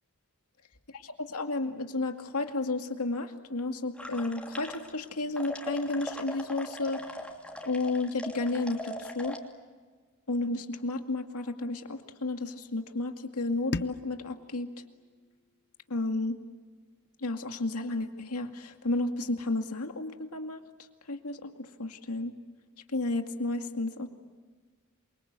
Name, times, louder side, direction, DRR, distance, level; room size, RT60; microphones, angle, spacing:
voice 1, 0.9-7.0 7.6-9.4 10.3-14.7 15.9-16.4 17.2-20.6 21.1-22.3 22.9-24.1, left 2 dB, 80° left, 5 dB, 2.3 m, -32 dB
sound 1, 4.0-5.1 5.4-9.4, left 1 dB, 5° left, 2.9 m, -40 dB
sound 2, 13.7-16.6, left 3 dB, 50° left, 0.9 m, -41 dB
27.5 x 24.0 x 8.3 m, 1.4 s
head